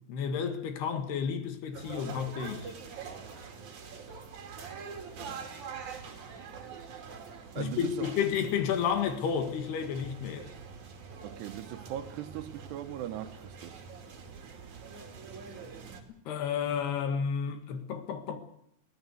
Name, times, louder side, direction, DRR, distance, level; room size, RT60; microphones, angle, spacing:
voice 1, 0.1-2.7 7.6-10.5 16.3-18.4, left 7 dB, 75° left, 3.8 m, -31 dB
sound 1, 1.7-16.0, right 5 dB, 50° right, 3.7 m, -45 dB
voice 2, 7.6-8.1 11.2-13.8, right 11 dB, 85° right, 3.1 m, -39 dB
22.5 x 16.5 x 8.3 m
omnidirectional pair, 4.7 m